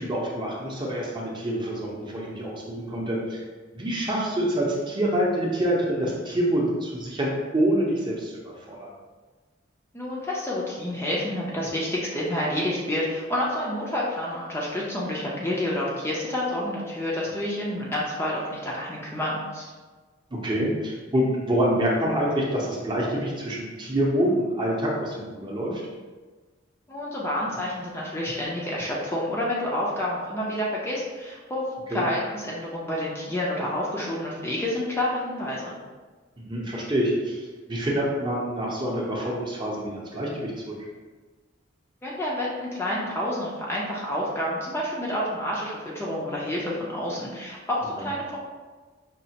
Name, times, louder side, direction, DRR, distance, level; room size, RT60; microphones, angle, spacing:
voice 1, 0.0-3.4 3.7-8.9 20.3-25.8 31.9-32.0 36.4-37.4 37.7-40.7 48.0-48.1, right 1 dB, 25° right, -3 dB, 0.7 m, -26 dB
voice 2, 9.9-19.7 26.9-35.7 42.0-48.4, left 1 dB, 15° left, -5 dB, 0.5 m, -29 dB
5.2 x 2.4 x 2.8 m, 1.4 s
head